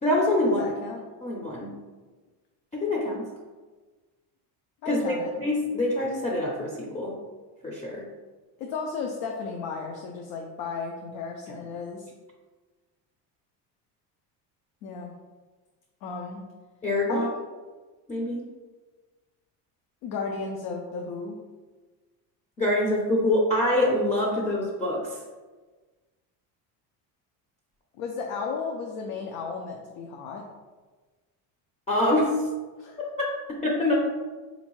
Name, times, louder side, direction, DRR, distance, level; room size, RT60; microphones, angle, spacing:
voice 1, 0.0-0.6 1.2-1.7 2.7-3.3 4.9-7.2 7.6-8.1 16.8-17.3 18.1-18.5 22.6-25.2 31.9-32.3 33.2-33.3 33.6-34.0, left 1 dB, 15° left, -3 dB, 0.4 m, -25 dB
voice 2, 0.6-1.0 4.8-5.3 8.6-12.1 14.8-15.1 16.0-16.4 17.1-17.4 20.0-21.4 28.0-30.5 32.8-33.1, left 5 dB, 80° left, 1 dB, 0.5 m, -34 dB
3.5 x 2.6 x 3.0 m, 1.3 s
cardioid pair, 120°, 41 cm